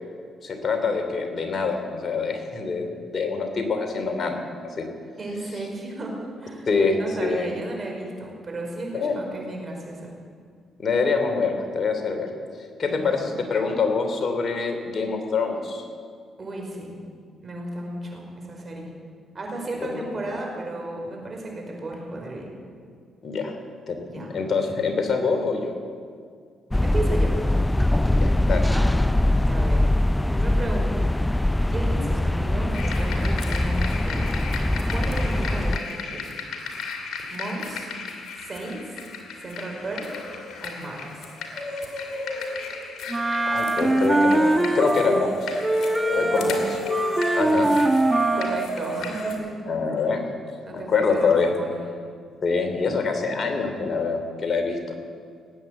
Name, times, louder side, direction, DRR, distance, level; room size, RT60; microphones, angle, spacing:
voice 1, 0.4-4.9 6.7-7.5 8.9-9.1 10.8-12.3 12.8-15.8 19.7-20.0 23.2-23.6 23.9-25.7 28.1-28.7 43.5-45.6 46.1-46.8 47.3-47.7 49.6-50.3 50.7-51.5 52.4-54.8, left 4 dB, 50° left, 5 dB, 3.0 m, -25 dB
voice 2, 5.2-6.7 7.0-10.1 12.8-13.3 16.4-16.9 17.4-18.9 19.3-22.5 24.1-24.3 26.8-27.4 28.6-29.8 30.3-31.1 31.6-34.3 34.9-36.4 37.3-37.9 38.3-39.0 39.4-40.1 40.6-41.3 46.2-46.6 48.3-49.5 50.0-50.1 50.6-51.8, right 2 dB, 40° right, 0 dB, 5.2 m, -34 dB
sound 1, 26.7-35.8, left 1 dB, 15° left, 0.4 m, -22 dB
sound 2, 32.7-49.3, left 2 dB, 70° left, 2.7 m, -34 dB
Wind instrument woodwind instrument, 43.1-45.3 45.6-48.7, right 1 dB, 20° right, 1.6 m, -22 dB
19.5 x 9.0 x 7.8 m, 2.1 s
supercardioid pair, 55°, 0 cm